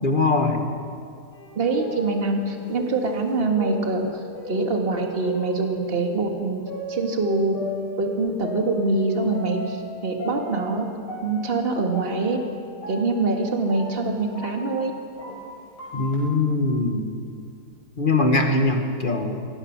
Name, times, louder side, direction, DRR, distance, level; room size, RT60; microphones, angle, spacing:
voice 1, 0.0-0.6 15.9-17.1 18.0-19.5, left 2 dB, 25° left, 4 dB, 1.7 m, -22 dB
sound 1, 1.3-6.1 6.7-9.9 10.2-16.3, left 1 dB, 85° left, 7.8 m, -37 dB
voice 2, 1.6-6.6 6.9-7.6 8.0-10.8 11.2-12.4 12.9-14.9, right 3 dB, 30° right, 2 dB, 2.1 m, -24 dB
24.5 x 18.0 x 6.1 m, 2.4 s
omnidirectional pair, 2.3 m